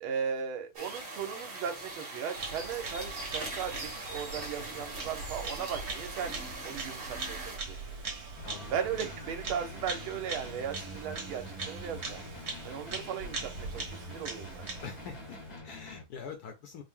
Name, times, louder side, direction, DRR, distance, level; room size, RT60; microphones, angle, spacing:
voice 1, 0.0-6.4 6.6-7.8 8.7-12.2 12.6-14.6, right 7 dB, 80° right, 1.5 m, -37 dB
sound 1, 0.7-7.6, right 2 dB, 35° right, 1.1 m, -41 dB
Bird vocalization bird call bird song, 2.4-15.6, right 4 dB, 55° right, 1.4 m, -41 dB
voice 2, 4.4-4.8 8.4-8.8 14.8-16.8, left 6 dB, 80° left, 0.8 m, -45 dB
sound 2, 8.4-16.0, left 1 dB, 65° left, 0.4 m, -46 dB
4.4 x 2.0 x 3.6 m
omnidirectional pair, 2.3 m